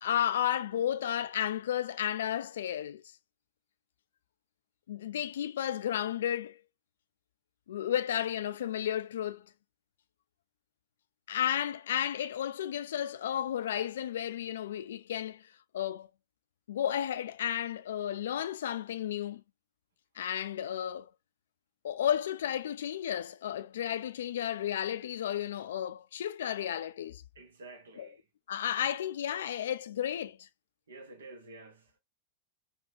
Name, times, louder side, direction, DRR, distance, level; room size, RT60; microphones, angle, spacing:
voice 1, 0.0-3.0 4.9-6.6 7.7-9.4 11.3-15.5 15.7-16.1 16.7-19.4 20.2-21.1 21.8-27.2 28.0-28.1 28.5-30.5, left 10 dB, 60° left, 0.3 m, -33 dB
voice 2, 27.3-28.2 30.9-31.9, right 2 dB, 65° right, 0.9 m, -50 dB
4.4 x 2.3 x 2.4 m
figure-of-eight pair, 90°, 0 cm